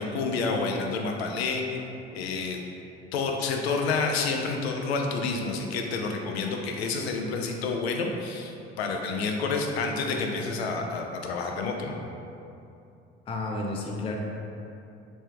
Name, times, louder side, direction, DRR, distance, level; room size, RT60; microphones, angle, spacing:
voice 1, 0.0-1.6 2.1-2.6 3.1-12.0, left 4 dB, 75° left, 2 dB, 0.5 m, -29 dB
voice 2, 13.3-14.2, left 2 dB, 20° left, 0 dB, 0.4 m, -31 dB
3.1 x 3.1 x 3.4 m, 2.7 s
figure-of-eight pair, 55°, 32 cm